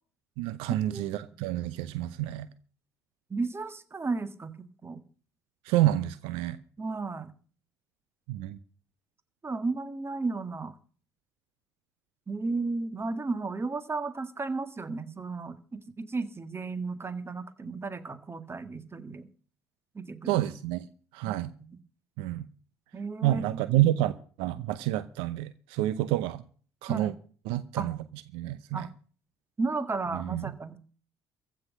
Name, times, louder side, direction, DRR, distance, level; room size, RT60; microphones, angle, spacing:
voice 1, 0.4-2.5 5.7-6.6 8.3-8.6 20.3-20.9 21.1-21.5 22.2-22.5 23.2-24.1 24.4-26.4 26.8-27.1 27.5-28.0 28.3-28.9 30.1-30.5, right 14 dB, 70° right, 0.8 m, -28 dB
voice 2, 3.3-5.0 6.8-7.3 9.4-10.8 12.3-19.3 20.0-20.4 21.3-21.8 22.9-23.6 25.9-26.0 26.9-27.1 27.8-27.9 28.7-28.9 29.6-30.8, right 3 dB, 25° right, 1.8 m, -34 dB
15.0 x 6.2 x 9.7 m
hypercardioid pair, 55°, 9 cm